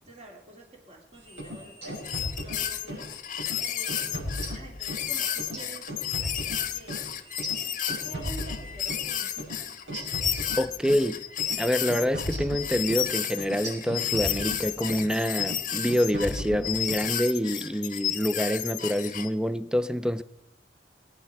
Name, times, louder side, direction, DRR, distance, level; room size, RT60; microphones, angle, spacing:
voice 1, 0.0-2.0 2.4-3.1 3.5-7.0 7.9-9.4, right 2 dB, 35° right, 2.6 m, -48 dB
sound 1, 1.3-3.1 3.4-3.6 3.9-5.1 5.4-9.1 9.4-9.5 9.9-11.0 11.4-11.6 11.9-15.1 15.4-15.6 15.9-17.0, equal, 90° right, 6.5 m, -36 dB
sound 2, 1.9-19.3, left 10 dB, 45° left, 0.8 m, -32 dB
voice 2, 10.6-11.2 11.6-20.2, equal, 5° right, 0.5 m, -26 dB
21.5 x 9.7 x 4.7 m
head